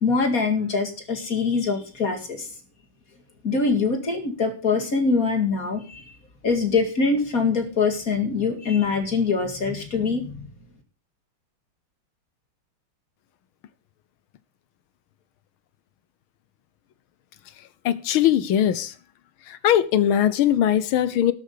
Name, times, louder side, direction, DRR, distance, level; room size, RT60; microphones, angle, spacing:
voice 1, 0.0-2.5 3.4-6.1 6.4-10.5, left 4 dB, 40° left, 2.4 m, -23 dB
voice 2, 17.8-18.9 19.5-21.3, left 10 dB, 75° left, 1.7 m, -20 dB
12.5 x 8.1 x 6.6 m
omnidirectional pair, 2.4 m